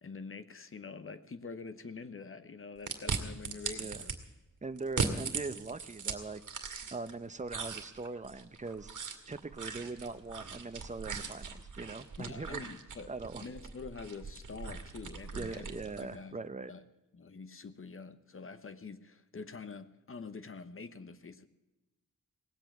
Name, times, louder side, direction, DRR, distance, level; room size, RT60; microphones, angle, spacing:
voice 1, 0.0-4.1 12.2-13.1 13.4-16.4 16.7-16.8 17.1-21.5, left 4 dB, 40° left, 12 dB, 1.0 m, -46 dB
sound 1, 2.9-4.2 4.8-7.1 7.5-16.1, right 5 dB, 70° right, 2.0 m, -39 dB
voice 2, 4.6-6.4 6.9-12.6 13.1-13.4 15.4-16.7, right 3 dB, 25° right, 11 dB, 0.8 m, -41 dB
18.5 x 8.2 x 9.1 m, 1.1 s
wide cardioid pair, 110°, 31 cm